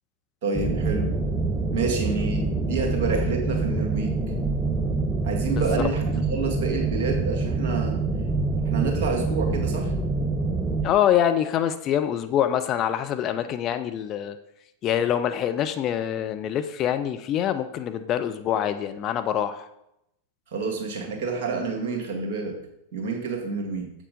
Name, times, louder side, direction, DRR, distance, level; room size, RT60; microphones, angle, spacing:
voice 1, 0.4-1.2 1.7-4.3 5.2-8.0 8.7-9.9 20.5-22.6 22.9-23.9, right 4 dB, 45° right, 2 dB, 1.9 m, -28 dB
sound 1, 0.5-10.9, right 3 dB, 15° right, 0.8 m, -26 dB
voice 2, 10.8-14.4 14.8-19.7, left 10 dB, 35° left, 8 dB, 0.5 m, -25 dB
7.4 x 6.7 x 5.2 m, 0.80 s
figure-of-eight pair, 90°, 0 cm